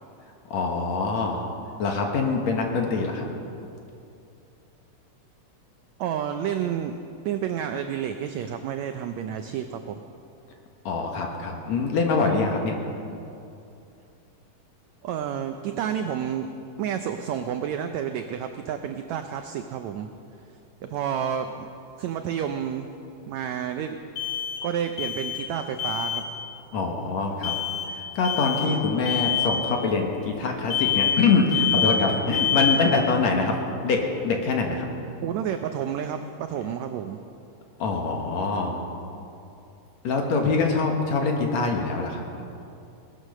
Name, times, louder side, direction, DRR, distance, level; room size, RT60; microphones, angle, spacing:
voice 1, 0.5-1.5 1.8-3.3 10.9-12.8 26.7-27.5 27.9-33.6 33.8-34.9 37.8-38.8 40.0-42.2, left 4 dB, 60° left, 2 dB, 2.3 m, -24 dB
voice 2, 6.0-7.0 7.2-10.0 15.0-16.5 16.8-20.1 20.8-21.7 22.0-22.9 23.3-24.0 24.3-26.2 35.2-37.2, right 9 dB, 85° right, 7 dB, 1.6 m, -30 dB
sound 1, 20.9-21.0 24.2-25.5 25.8-26.3 27.4-27.9 28.2-28.7 29.1-29.6 30.7-31.3 31.5-32.1 32.3-32.9, left 9 dB, 90° left, 3.9 m, -26 dB
18.5 x 11.0 x 6.6 m, 2.6 s
omnidirectional pair, 3.9 m